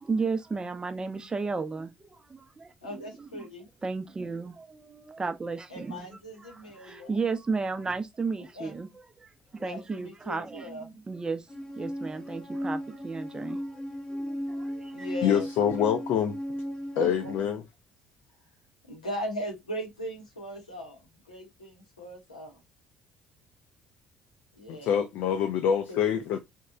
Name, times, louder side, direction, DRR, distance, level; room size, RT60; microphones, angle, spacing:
voice 1, 0.0-3.5 3.8-11.5 11.8-13.8 14.1-15.1, right 4 dB, 20° right, 0.5 m, -34 dB
voice 2, 2.8-3.7 5.7-7.2 8.6-8.7 9.6-10.9 14.9-15.5 16.9-17.3 18.9-22.6 24.6-25.0 25.9-26.2, equal, 90° left, 0.8 m, -39 dB
sound 1, 11.5-17.4, equal, 20° left, 0.9 m, -36 dB
voice 3, 15.2-16.4 17.0-17.6 24.7-26.4, left 8 dB, 60° left, 0.4 m, -26 dB
2.9 x 2.1 x 2.4 m
figure-of-eight pair, 50°, 4 cm